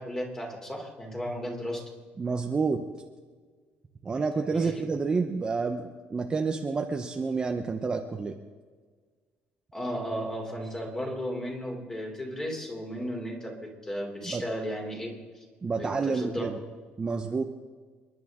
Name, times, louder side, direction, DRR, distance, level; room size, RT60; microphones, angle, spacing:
voice 1, 0.0-1.8 4.4-4.8 9.7-15.2 15.7-16.5, equal, 15° left, 1 dB, 3.3 m, -35 dB
voice 2, 2.2-2.9 4.0-8.4 14.2-14.4 15.6-16.6 17.0-17.4, right 4 dB, 20° right, 4 dB, 0.9 m, -29 dB
29.0 x 11.0 x 3.7 m, 1.5 s
cardioid pair, 145°, 4 cm